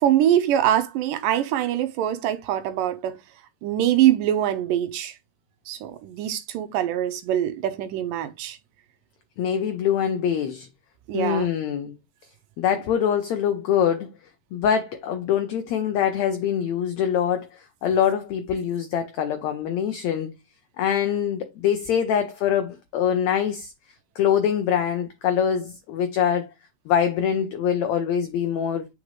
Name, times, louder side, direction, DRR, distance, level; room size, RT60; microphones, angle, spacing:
voice 1, 0.0-3.2 3.6-5.1 5.7-8.6 11.1-11.5, right 11 dB, 80° right, 2.2 m, -23 dB
voice 2, 9.4-10.7 11.1-11.9 12.6-14.1 14.5-20.3 20.8-23.7 24.1-26.5 26.9-28.9, left 8 dB, 80° left, 1.6 m, -24 dB
8.0 x 5.0 x 3.2 m
omnidirectional pair, 4.2 m